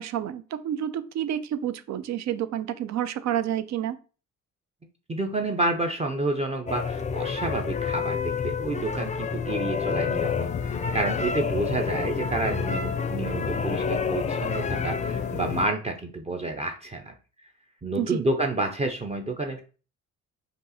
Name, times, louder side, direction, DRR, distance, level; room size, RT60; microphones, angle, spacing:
voice 1, 0.0-4.0 18.0-18.2, right 10 dB, 65° right, 13 dB, 0.5 m, -29 dB
voice 2, 5.1-17.1 17.8-19.6, right 2 dB, 20° right, 3 dB, 0.6 m, -29 dB
sound 1, 6.7-15.7, left 5 dB, 25° left, 0.5 m, -29 dB
sound 2, 10.1-15.7, left 11 dB, 75° left, 0.5 m, -37 dB
5.2 x 2.5 x 4.1 m, 0.36 s
cardioid pair, 90°, 30 cm